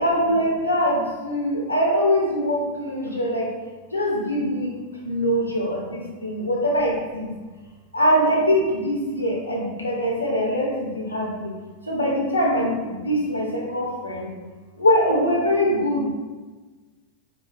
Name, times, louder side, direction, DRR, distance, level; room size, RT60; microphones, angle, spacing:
voice 1, 0.0-3.5 3.9-4.7 5.0-7.3 7.9-11.5 11.8-14.3 14.8-16.0, equal, 80° left, -3 dB, 0.8 m, -23 dB
4.1 x 2.3 x 3.3 m, 1.3 s
figure-of-eight pair, 90°, 0 cm